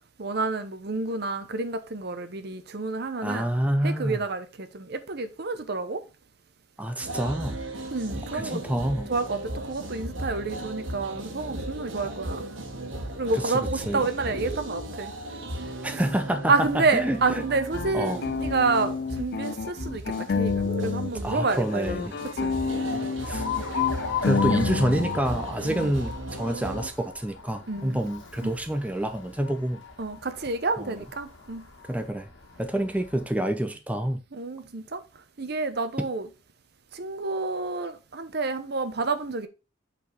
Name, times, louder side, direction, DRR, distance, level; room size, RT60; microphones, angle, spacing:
voice 1, 0.2-3.5 3.8-6.0 7.9-8.6 9.1-12.4 13.2-15.1 15.7-16.0 16.5-22.1 22.4-22.5 25.7-25.9 27.7-28.0 28.4-28.5 30.0-31.7 34.3-35.0 35.4-36.3 36.9-39.5, right 3 dB, 55° right, 0.8 m, -29 dB
voice 2, 3.2-4.2 6.8-7.6 8.3-9.1 13.9-14.0 15.8-17.2 17.9-18.2 20.8-20.9 21.2-22.1 23.3-23.4 24.2-29.8 30.8-30.9 31.8-32.3 32.6-34.2, right 1 dB, 5° right, 0.7 m, -27 dB
sound 1, 7.0-26.9, right 1 dB, 90° right, 1.5 m, -36 dB
sound 2, 17.2-21.1 21.4-25.2, left 5 dB, 55° left, 0.4 m, -29 dB
Alarm, 23.2-33.3, left 8 dB, 85° left, 1.5 m, -37 dB
8.0 x 4.2 x 3.4 m
head